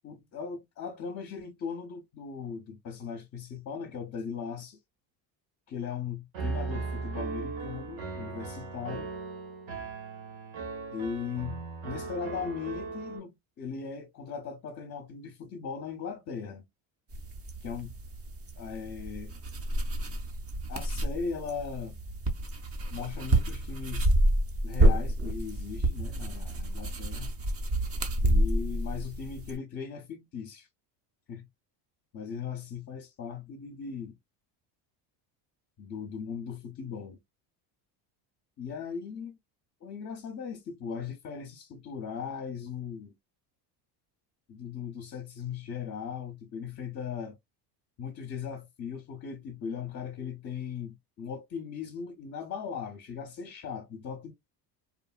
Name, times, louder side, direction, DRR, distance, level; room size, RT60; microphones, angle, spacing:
voice 1, 0.0-4.8 5.7-9.1 10.9-16.7 17.6-17.9 18.6-19.3 20.7-21.9 22.9-24.1 24.6-27.3 28.2-30.7 31.3-31.5 32.1-34.2 35.8-37.2 38.6-39.4 39.8-43.2 44.5-47.4 48.0-54.3, left 6 dB, 35° left, 0.6 m, -38 dB
Piano, 6.3-13.2, right 4 dB, 75° right, 1.3 m, -37 dB
sound 1, 17.1-29.6, right 1 dB, 30° right, 0.6 m, -29 dB
2.9 x 2.1 x 2.3 m
cardioid pair, 115°, 48 cm